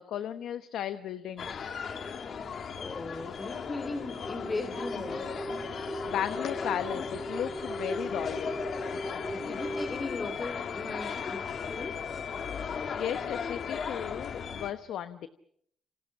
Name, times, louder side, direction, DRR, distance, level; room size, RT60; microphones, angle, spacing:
voice 1, 0.0-1.8 6.1-8.6 9.1-9.3 12.9-15.3, left 10 dB, 80° left, 10 dB, 1.0 m, -35 dB
sound 1, 1.4-14.7, left 6 dB, 55° left, 1.9 m, -36 dB
voice 2, 2.7-5.3 9.3-11.4 11.7-12.0, left 3 dB, 30° left, 5 dB, 3.4 m, -37 dB
sound 2, 3.7-10.0, right 1 dB, 10° right, 1.6 m, -38 dB
29.0 x 26.5 x 5.8 m, 0.69 s
cardioid pair, 90°, 0 cm